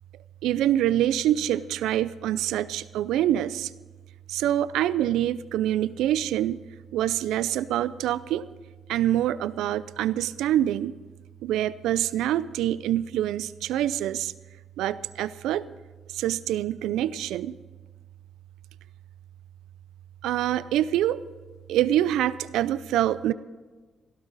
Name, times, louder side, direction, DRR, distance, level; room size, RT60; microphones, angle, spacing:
voice 1, 0.4-3.7 4.3-6.6 6.9-8.5 8.9-11.0 11.4-14.3 14.8-15.6 16.1-17.5 20.2-21.2 21.7-23.3, right 12 dB, 90° right, 17 dB, 0.4 m, -25 dB
17.5 x 15.5 x 4.1 m, 1.3 s
cardioid pair, 90°, 0 cm